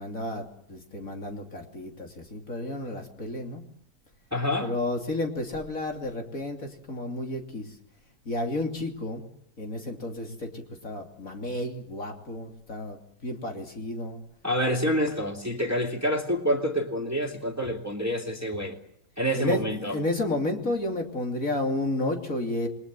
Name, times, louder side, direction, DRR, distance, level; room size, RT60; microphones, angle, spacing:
voice 1, 0.0-3.6 4.6-7.7 8.2-9.2 9.6-14.2 19.4-19.6 19.9-22.7, left 2 dB, 55° left, 3 dB, 3.3 m, -31 dB
voice 2, 4.3-4.7 14.4-18.8 19.2-20.0, equal, 10° right, 3 dB, 2.4 m, -27 dB
28.5 x 21.5 x 7.5 m, 0.71 s
omnidirectional pair, 1.8 m